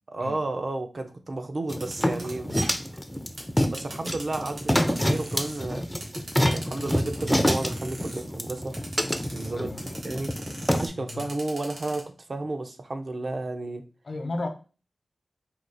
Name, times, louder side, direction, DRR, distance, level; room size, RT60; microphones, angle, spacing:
voice 1, 0.1-2.5 3.7-5.9 6.5-8.8 9.3-9.7 10.0-10.3 10.7-13.9, right 2 dB, 50° right, 0.6 m, -32 dB
sound 1, 1.7-10.9, equal, 5° left, 0.4 m, -27 dB
sound 2, 1.7-5.6 6.0-8.2 8.7-9.5 9.8-12.0, right 1 dB, 90° right, 1.5 m, -40 dB
voice 2, 9.6-10.2 10.9-11.3 14.0-14.5, left 2 dB, 65° left, 0.9 m, -35 dB
4.4 x 2.4 x 3.9 m
wide cardioid pair, 90°, 0 cm